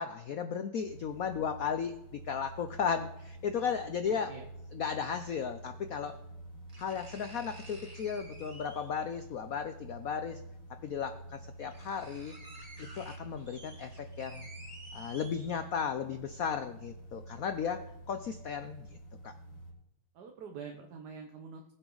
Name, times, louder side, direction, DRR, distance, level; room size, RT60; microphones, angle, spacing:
voice 1, 0.0-4.3 4.7-6.1 6.8-10.4 10.8-12.4 12.8-14.5 14.9-18.9 19.2-19.3, left 7 dB, 80° left, 9 dB, 0.7 m, -35 dB
sound 1, 0.8-19.7, right 1 dB, 55° left, 4.4 m, -49 dB
voice 2, 3.8-4.5 20.1-21.7, right 5 dB, 55° right, 4 dB, 1.4 m, -46 dB
sound 2, 5.8-5.9 6.7-9.1 10.4-10.5 11.2-11.3 11.5-15.9 16.4-16.5, right 1 dB, 20° right, 1.9 m, -52 dB
20.0 x 8.1 x 3.9 m, 0.88 s
omnidirectional pair, 2.3 m